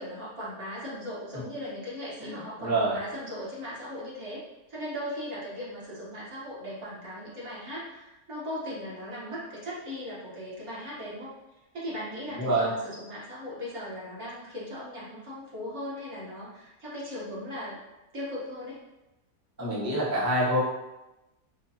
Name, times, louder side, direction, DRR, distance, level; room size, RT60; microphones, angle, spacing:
voice 1, 0.0-4.4 4.7-11.3 11.7-17.8 18.1-18.8, equal, 50° right, -7 dB, 1.3 m, -38 dB
voice 2, 2.2-2.9 12.3-12.7 19.6-20.6, right 1 dB, 20° right, -8 dB, 0.5 m, -26 dB
4.4 x 2.3 x 2.7 m, 0.98 s
omnidirectional pair, 1.6 m